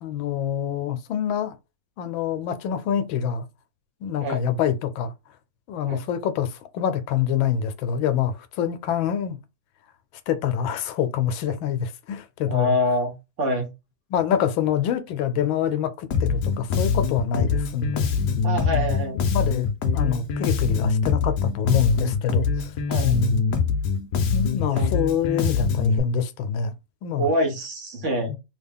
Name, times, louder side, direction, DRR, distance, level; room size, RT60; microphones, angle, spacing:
voice 1, 0.0-1.5 2.0-3.4 4.0-5.1 5.7-9.4 10.3-12.7 14.1-18.1 18.7-19.0 19.3-22.7 23.0-23.6 24.3-26.7 27.0-27.3 28.3-28.4, left 8 dB, 85° left, 1.4 m, -26 dB
voice 2, 12.5-13.7 18.4-19.2 22.9-23.2 24.7-24.9 27.2-28.3, left 1 dB, 50° right, 1.0 m, -25 dB
Bass guitar, 16.1-26.0, left 5 dB, 70° left, 1.1 m, -24 dB
3.4 x 2.3 x 3.5 m
omnidirectional pair, 2.1 m